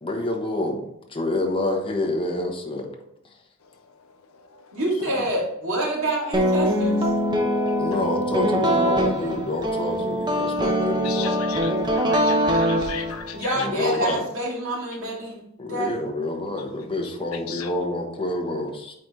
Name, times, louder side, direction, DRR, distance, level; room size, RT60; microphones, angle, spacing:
voice 1, 0.0-0.8 1.1-2.9 7.8-11.4 13.5-14.2 15.6-18.9, left 2 dB, 25° left, 1 dB, 1.2 m, -27 dB
voice 2, 4.7-7.1 13.3-16.0, right 1 dB, 80° right, -5 dB, 2.5 m, -27 dB
sound 1, 6.3-13.4, equal, 20° right, 0.9 m, -23 dB
voice 3, 11.0-11.7 12.1-13.2 17.5-17.7, left 8 dB, 80° left, 6 dB, 0.8 m, -35 dB
8.4 x 4.1 x 3.2 m, 0.79 s
head